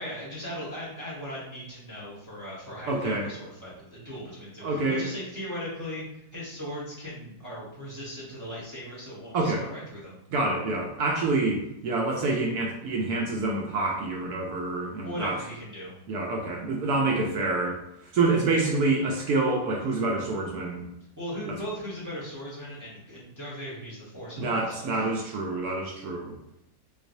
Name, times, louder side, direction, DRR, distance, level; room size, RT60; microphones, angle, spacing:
voice 1, 0.0-10.2 15.0-15.9 21.2-24.9, equal, 15° right, -8 dB, 0.8 m, -38 dB
voice 2, 2.9-3.3 4.6-5.1 9.3-9.6 10.3-15.4 16.1-20.9 24.4-26.4, right 3 dB, 70° right, 0 dB, 1.0 m, -27 dB
3.9 x 2.5 x 2.6 m, 0.83 s
omnidirectional pair, 1.9 m